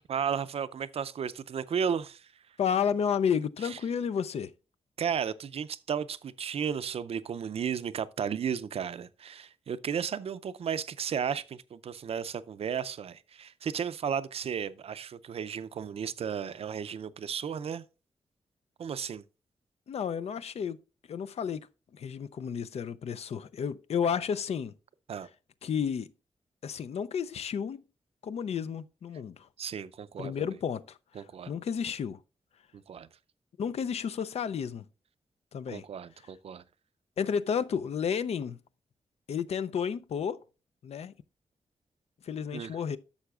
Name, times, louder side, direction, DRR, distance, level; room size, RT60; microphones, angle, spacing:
voice 1, 0.1-2.3 3.6-3.8 5.0-17.8 18.8-19.2 25.1-25.3 29.6-30.3 31.2-31.5 32.9-33.1 35.7-36.6 42.5-42.8, right 7 dB, 65° right, 0.4 m, -34 dB
voice 2, 2.6-4.5 19.9-20.8 21.1-24.7 25.6-26.1 26.6-27.8 28.2-29.5 30.2-32.2 33.6-34.9 35.5-35.9 37.2-38.6 39.3-40.4 40.8-41.1 42.2-43.0, left 7 dB, 70° left, 0.4 m, -32 dB
11.5 x 6.9 x 2.4 m
wide cardioid pair, 120°, 11 cm